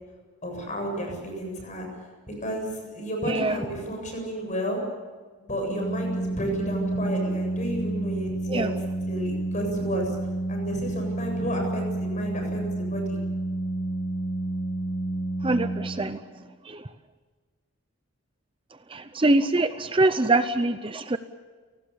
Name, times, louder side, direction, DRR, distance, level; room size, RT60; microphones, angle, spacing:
voice 1, 0.4-1.9 2.3-4.8 5.4-8.7 9.0-10.2 10.5-13.2, equal, 35° left, 2 dB, 7.7 m, -32 dB
Organ, 5.6-16.4, right 2 dB, 55° left, 1.2 m, -30 dB
voice 2, 15.4-16.2 16.7-16.8 18.9-21.2, right 2 dB, 25° right, 11 dB, 0.7 m, -24 dB
29.5 x 19.0 x 7.1 m, 1.5 s
head